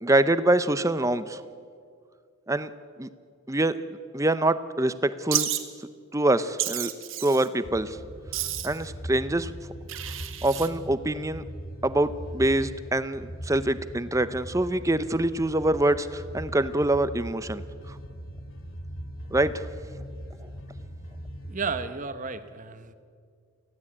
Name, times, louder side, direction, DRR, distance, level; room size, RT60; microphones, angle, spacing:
voice 1, 0.0-1.4 2.5-2.7 3.0-3.1 3.5-3.8 4.1-5.5 6.1-6.9 7.2-8.0 8.6-9.5 10.4-11.4 11.8-17.6 19.3-19.7, right 1 dB, 15° right, 13 dB, 0.7 m, -25 dB
Wild animals, 5.3-5.6 6.6-7.5 8.3-8.8 9.9-10.7, right 12 dB, 65° right, 1.8 m, -30 dB
sound 1, 7.6-21.9, equal, 65° left, 2.5 m, -40 dB
voice 2, 21.4-22.9, right 5 dB, 35° right, 10 dB, 1.1 m, -33 dB
24.5 x 16.0 x 8.7 m, 2.2 s
head